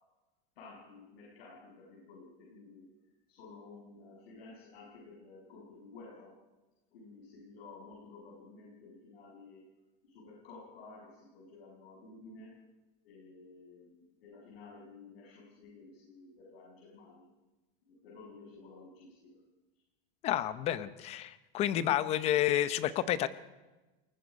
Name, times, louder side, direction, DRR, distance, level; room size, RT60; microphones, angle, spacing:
voice 1, 0.5-2.9 3.3-6.3 6.9-9.6 10.0-12.6 13.0-17.3 17.8-19.4, left 3 dB, 85° left, -3 dB, 6.8 m, -53 dB
voice 2, 20.2-23.3, left 12 dB, 20° left, 14 dB, 0.7 m, -30 dB
28.5 x 20.5 x 5.3 m, 1.1 s
supercardioid pair, 180°, 29 cm